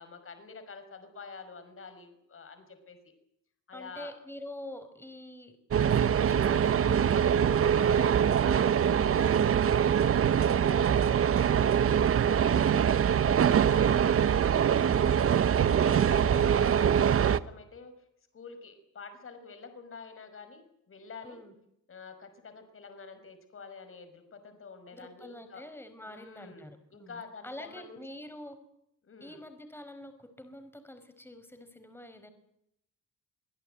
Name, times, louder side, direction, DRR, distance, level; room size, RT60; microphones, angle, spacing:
voice 1, 0.0-3.0 3.7-4.1 12.0-15.3 15.6-17.9 18.3-21.4 21.9-25.6 26.1-28.2 29.0-29.4, left 4 dB, 45° left, 9 dB, 5.8 m, -48 dB
voice 2, 3.7-5.5 6.0-11.7 13.4-13.7 16.0-16.3 21.2-21.5 24.9-28.6 29.2-32.3, left 1 dB, 5° left, 9 dB, 5.2 m, -47 dB
sound 1, 5.7-17.4, right 8 dB, 50° right, 1.0 m, -24 dB
25.0 x 16.5 x 9.2 m, 0.78 s
cardioid pair, 90°, 30 cm